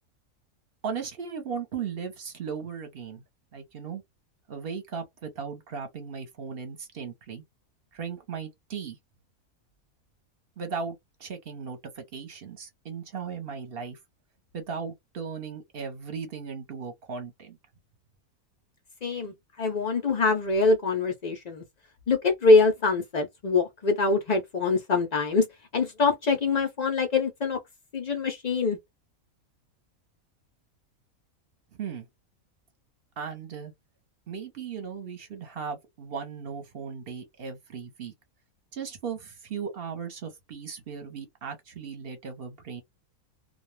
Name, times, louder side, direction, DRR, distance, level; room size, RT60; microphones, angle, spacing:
voice 1, 0.8-3.2 3.5-4.0 4.5-7.4 7.9-9.0 10.6-14.0 14.5-17.6 31.7-32.1 33.2-33.7 34.3-38.1 38.7-42.8, right 6 dB, 50° right, 0.8 m, -37 dB
voice 2, 19.0-21.6 22.1-25.5 25.7-27.6 27.9-28.8, left 3 dB, 70° left, 0.4 m, -24 dB
2.3 x 2.2 x 3.1 m
omnidirectional pair, 1.5 m